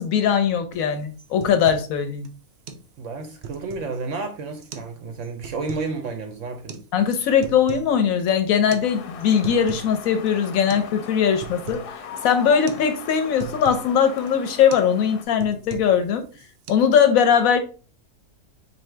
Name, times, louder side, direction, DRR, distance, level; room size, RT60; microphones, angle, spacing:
voice 1, 0.0-2.3 6.9-16.3 16.7-17.6, left 7 dB, 70° left, 0.9 m, -20 dB
sound 1, 0.7-0.9 1.2-1.9 2.2-2.3 2.7-2.9 3.2-4.0 4.6-4.9 5.2-5.9 6.7-6.9 7.2-7.9 8.2-8.3 8.7-8.9 9.2-9.9 10.3-10.4 10.7-10.9 11.2-11.9 12.3-12.4 12.7-12.9 13.1-13.9 14.3-14.4 14.7-14.9 15.2-16.0 16.3-16.7, right 7 dB, 90° right, 0.5 m, -38 dB
voice 2, 3.0-6.8, right 3 dB, 65° right, 0.8 m, -31 dB
sound 2, 8.8-15.2, left 6 dB, 85° left, 1.2 m, -39 dB
4.1 x 2.7 x 3.2 m
omnidirectional pair, 1.6 m